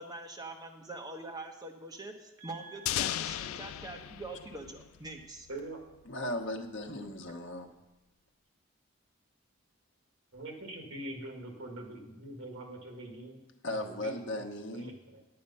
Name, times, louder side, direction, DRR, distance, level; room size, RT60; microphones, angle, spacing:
voice 1, 0.0-5.5, right 2 dB, 20° right, 2 dB, 1.0 m, -44 dB
voice 2, 2.4-3.1 5.5-5.8 10.3-13.4 13.7-14.4 14.7-15.2, right 1 dB, 70° right, 2 dB, 1.8 m, -44 dB
sound 1, 2.9-5.6, left 12 dB, 75° left, 0.3 m, -36 dB
voice 3, 6.1-7.7 13.6-14.9, left 1 dB, 60° left, 4 dB, 1.0 m, -37 dB
9.4 x 8.8 x 5.5 m, 0.97 s
head